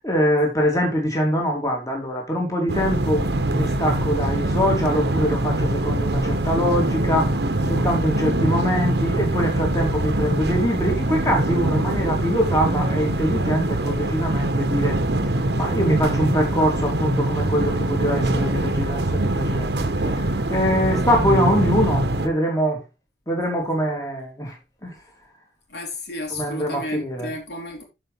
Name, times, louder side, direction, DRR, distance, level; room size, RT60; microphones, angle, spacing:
voice 1, 0.0-7.4 7.6-15.0 15.6-19.7 20.0-22.8 23.3-24.5 24.8-24.9 26.3-27.3, equal, 20° left, 2.8 m, -23 dB
sound 1, 2.7-22.3, right 1 dB, 75° right, 1.2 m, -23 dB
voice 2, 25.7-27.8, left 1 dB, 75° left, 3.9 m, -32 dB
13.5 x 5.3 x 3.4 m
head